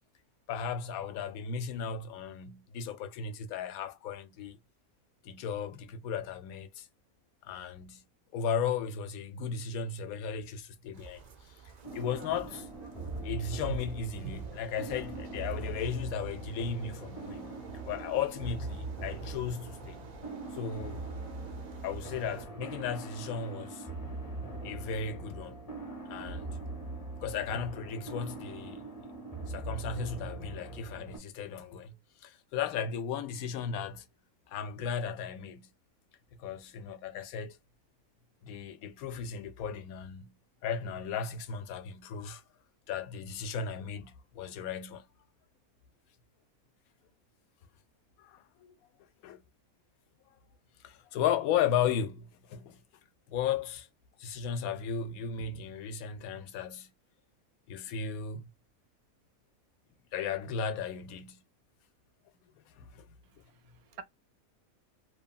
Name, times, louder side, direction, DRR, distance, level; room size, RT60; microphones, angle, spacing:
voice 1, 0.5-4.6 5.2-6.9 7.4-8.0 8.3-11.2 11.9-12.7 13.2-17.6 17.8-20.0 20.5-21.1 21.8-23.8 24.6-25.6 26.1-26.5 27.2-28.8 29.5-31.9 32.2-34.0 34.5-35.7 36.4-37.6 38.4-40.3 40.6-42.4 42.9-45.0 48.2-48.8 49.2-49.4 50.8-52.8 53.3-53.9 54.2-56.9 57.7-58.5 60.1-61.4 62.8-63.0, left 7 dB, 80° left, 1.0 m, -35 dB
sound 1, 10.9-22.5, right 6 dB, 55° right, 0.4 m, -47 dB
sound 2, 11.8-31.2, right 2 dB, 30° left, 0.8 m, -41 dB
voice 2, 63.3-64.0, right 7 dB, 85° right, 1.1 m, -50 dB
3.0 x 2.3 x 2.2 m
omnidirectional pair, 1.5 m